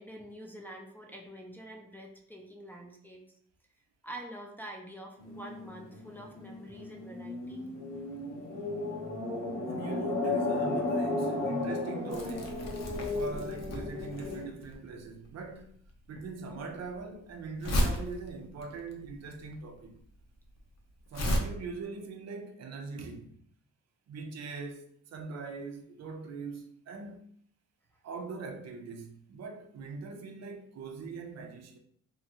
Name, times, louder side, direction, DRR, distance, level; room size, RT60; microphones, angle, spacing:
voice 1, 0.0-3.2 4.0-7.7, right 1 dB, 5° left, 0.5 m, -46 dB
sound 1, 5.2-14.5, left 2 dB, 85° left, 1.0 m, -34 dB
voice 2, 9.7-15.7 16.1-20.0 21.1-23.3 24.1-27.2 28.0-31.8, right 4 dB, 60° right, 0.5 m, -42 dB
Crumpling crinkling, 12.1-21.4, equal, 60° left, 0.7 m, -35 dB
3.1 x 2.3 x 2.8 m
cardioid pair, 90°, 30 cm